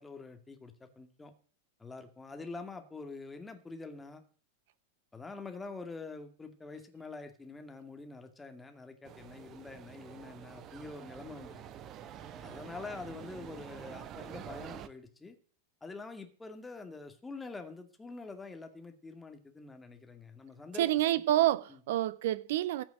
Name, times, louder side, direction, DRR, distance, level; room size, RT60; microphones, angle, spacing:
voice 1, 0.0-1.3 1.8-4.2 5.1-11.6 12.4-15.4 15.8-20.9 21.7-21.8, left 3 dB, 10° left, 2.2 m, -46 dB
sound 1, 9.0-14.9, right 9 dB, 30° right, 1.0 m, -47 dB
voice 2, 20.8-22.8, right 14 dB, 55° right, 0.9 m, -28 dB
14.5 x 6.1 x 8.9 m
figure-of-eight pair, 90°, 0 cm